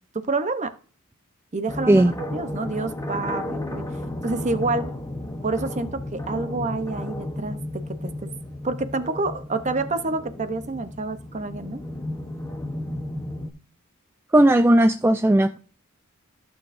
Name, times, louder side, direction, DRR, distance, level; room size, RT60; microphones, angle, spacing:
voice 1, 0.1-0.7 1.5-3.9 4.2-4.9 5.4-8.3 8.6-11.8, right 3 dB, 35° right, 0.7 m, -28 dB
sound 1, 1.7-13.5, left 1 dB, 15° left, 0.9 m, -33 dB
voice 2, 14.3-15.6, right 1 dB, 10° right, 0.3 m, -16 dB
14.5 x 6.3 x 2.6 m
head